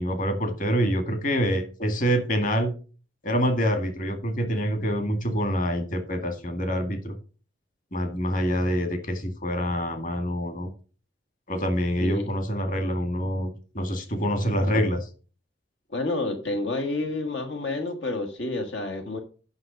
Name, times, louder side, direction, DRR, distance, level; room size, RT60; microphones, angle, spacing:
voice 1, 0.0-2.7 3.2-7.1 7.9-10.7 11.5-15.1, equal, 45° left, 6 dB, 2.0 m, -26 dB
voice 2, 15.9-19.2, left 2 dB, 70° left, 3 dB, 1.5 m, -29 dB
9.6 x 6.4 x 5.2 m, 0.36 s
head